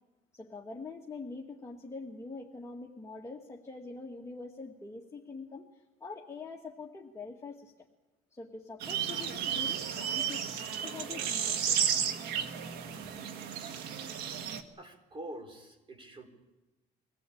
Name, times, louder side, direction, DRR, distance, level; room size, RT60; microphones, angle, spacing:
voice 1, 0.3-7.7 8.3-11.9 13.0-13.1, left 3 dB, 15° left, -2 dB, 1.9 m, -44 dB
sound 1, 8.8-14.6, right 8 dB, 90° right, 1.6 m, -33 dB
voice 2, 14.8-16.3, right 1 dB, 30° right, 5 dB, 4.4 m, -45 dB
24.5 x 17.5 x 8.7 m, 1.1 s
cardioid pair, 110°, 17 cm